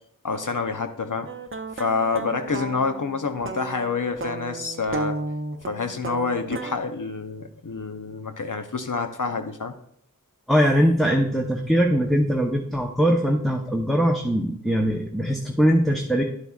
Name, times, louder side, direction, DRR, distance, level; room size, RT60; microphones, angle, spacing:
voice 1, 0.2-1.3 1.7-5.2 5.7-9.8, left 4 dB, 65° left, 7 dB, 0.7 m, -27 dB
sound 1, 1.3-6.8, right 3 dB, 35° right, 0.5 m, -34 dB
voice 2, 10.5-16.2, equal, ahead, 0 dB, 0.8 m, -21 dB
10.5 x 7.9 x 2.4 m, 0.67 s
wide cardioid pair, 45°, 34 cm